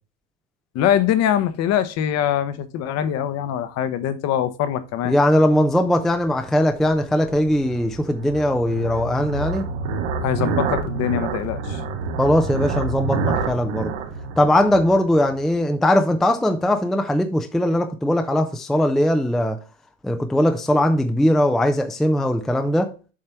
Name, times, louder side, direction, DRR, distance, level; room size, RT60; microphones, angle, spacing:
voice 1, 0.7-5.1 10.2-11.8, left 10 dB, 45° left, 0.9 m, -23 dB
voice 2, 5.0-9.7 12.2-13.9 14.4-19.6 20.0-22.9, left 1 dB, ahead, 0.4 m, -20 dB
sound 1, 5.9-15.5, right 4 dB, 70° right, 1.4 m, -28 dB
7.4 x 3.3 x 5.7 m
supercardioid pair, 120°, 37 cm